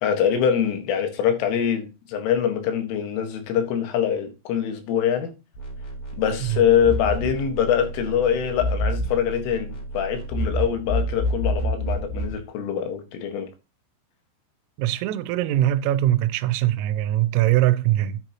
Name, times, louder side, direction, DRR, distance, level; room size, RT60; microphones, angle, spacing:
voice 1, 0.0-5.3 6.2-13.5, left 8 dB, 80° left, 4.2 m, -24 dB
sound 1, 5.6-12.4, equal, 45° left, 5.1 m, -28 dB
voice 2, 14.8-18.2, right 13 dB, 90° right, 3.3 m, -22 dB
9.6 x 8.8 x 3.0 m
omnidirectional pair, 5.7 m